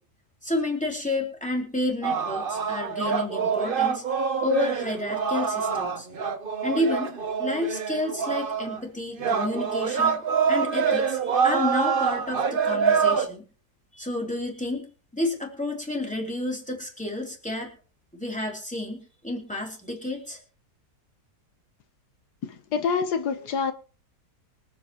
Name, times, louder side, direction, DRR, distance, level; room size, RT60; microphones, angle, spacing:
voice 1, 0.4-4.0 4.4-6.1 6.6-7.1 7.4-10.2 10.5-13.4 13.9-14.9 15.1-17.7 18.1-20.4, left 2 dB, 5° left, 3.2 m, -30 dB
sound 1, 2.0-8.8 9.2-13.3, right 6 dB, 40° right, 1.0 m, -25 dB
voice 2, 22.4-23.7, left 6 dB, 80° left, 1.5 m, -27 dB
24.5 x 8.3 x 3.0 m
omnidirectional pair, 1.7 m